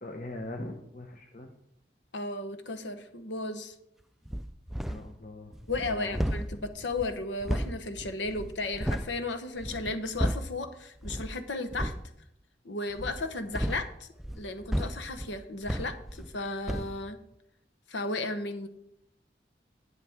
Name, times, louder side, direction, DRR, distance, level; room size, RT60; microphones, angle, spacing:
voice 1, 0.0-1.5 4.9-6.4, left 2 dB, 40° left, 3 dB, 0.8 m, -41 dB
voice 2, 2.1-3.7 5.7-11.9 12.6-14.1 14.3-17.2 17.9-18.7, left 2 dB, 85° left, 8 dB, 1.1 m, -34 dB
sound 1, 4.3-5.2 5.5-9.2 9.6-10.6 11.0-11.4 11.7-12.1 12.9-16.4 16.7-17.0, equal, ahead, 0.3 m, -34 dB
10.5 x 9.5 x 3.6 m, 0.79 s
head